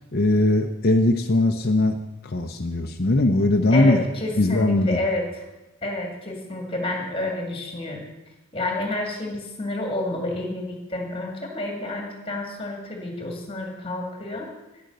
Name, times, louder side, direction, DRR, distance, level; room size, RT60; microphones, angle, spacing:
voice 1, 0.1-2.0 2.2-4.0 4.4-5.0, left 2 dB, 50° left, 3 dB, 0.7 m, -20 dB
voice 2, 3.7-5.3 5.8-8.0 8.5-14.5, left 1 dB, 25° left, 1 dB, 2.2 m, -29 dB
10.5 x 9.0 x 6.6 m, 1.0 s
head